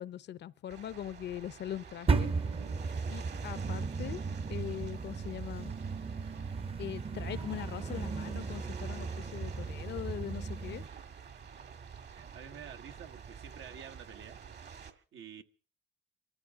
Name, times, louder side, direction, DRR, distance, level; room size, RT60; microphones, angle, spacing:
voice 1, 0.0-2.3 3.1-4.2 4.5-5.7 6.8-10.8, left 11 dB, 60° left, 0.7 m, -41 dB
sound 1, 0.7-14.9, right 6 dB, 60° right, 1.7 m, -47 dB
sound 2, 2.1-10.9, right 4 dB, 30° right, 0.7 m, -35 dB
voice 2, 12.1-14.4 14.8-15.4, right 8 dB, 85° right, 1.3 m, -49 dB
25.0 x 14.0 x 3.6 m
cardioid pair, 90°, 20 cm